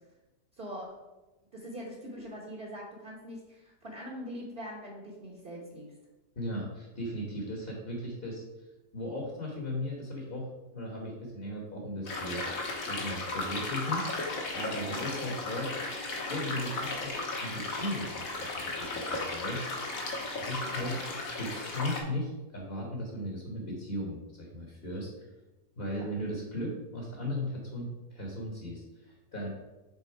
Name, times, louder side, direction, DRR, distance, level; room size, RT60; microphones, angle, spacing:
voice 1, 0.5-0.9 1.5-5.9 14.8-15.0 20.6-21.0 25.9-26.1, equal, 35° right, -4 dB, 1.3 m, -43 dB
voice 2, 6.3-8.4 8.9-10.5 10.7-14.0 14.5-15.7 16.3-17.1 17.4-19.8 20.4-21.0 21.4-25.1 25.8-29.5, left 1 dB, 35° left, -1 dB, 1.3 m, -37 dB
sound 1, 12.0-22.0, left 2 dB, 55° left, 1.5 m, -35 dB
7.1 x 3.9 x 4.6 m, 1.1 s
omnidirectional pair, 1.9 m